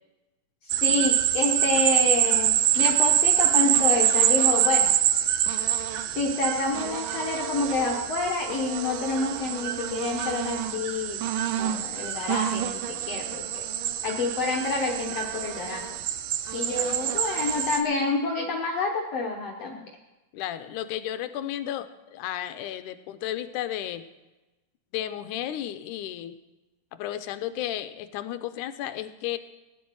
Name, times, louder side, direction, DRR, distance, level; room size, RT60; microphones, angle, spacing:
voice 1, 0.6-4.9 6.1-11.2 11.6-13.6 14.0-16.0 16.5-19.8, left 3 dB, 60° left, 0 dB, 1.8 m, -28 dB
sound 1, 0.7-17.8, right 11 dB, 80° right, 2.3 m, -25 dB
voice 2, 20.3-24.1 24.9-26.4 27.0-29.4, left 12 dB, 75° left, 11 dB, 2.1 m, -33 dB
17.5 x 10.0 x 4.7 m, 1.1 s
omnidirectional pair, 3.8 m